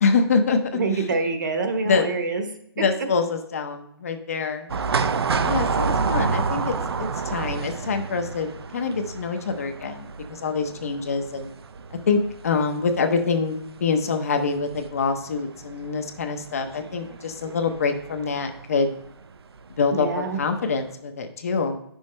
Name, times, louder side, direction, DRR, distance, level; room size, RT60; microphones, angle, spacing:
voice 1, 0.0-1.0 1.8-2.1 2.8-4.7 5.4-11.5 12.1-18.9 19.8-21.8, left 4 dB, 35° left, 6 dB, 0.7 m, -25 dB
voice 2, 0.7-2.5 19.9-20.4, right 3 dB, 45° right, 6 dB, 1.1 m, -25 dB
sound 1, 4.7-18.7 19.0-19.1 20.1-20.5 20.8-20.9, right 5 dB, 75° right, 0.6 m, -29 dB
9.3 x 6.3 x 3.1 m, 0.77 s
hypercardioid pair, 175°, 13 cm